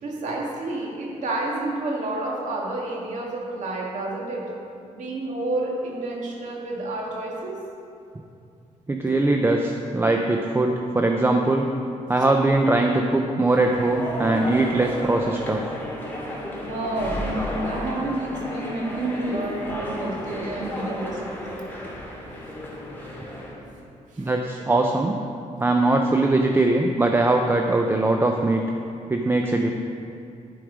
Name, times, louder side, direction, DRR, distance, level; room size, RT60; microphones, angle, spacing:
voice 1, 0.0-4.5 4.9-7.6 16.6-21.4 24.1-24.3, right 2 dB, 70° right, -2 dB, 1.9 m, -29 dB
voice 2, 8.9-11.7 12.1-15.6 24.2-25.2 25.6-28.6 29.1-29.7, right 2 dB, 15° right, 2 dB, 0.5 m, -21 dB
sound 1, 13.5-23.6, left 1 dB, 15° left, 2.2 m, -33 dB
11.5 x 4.7 x 5.0 m, 2.6 s
cardioid pair, 100°, 13 cm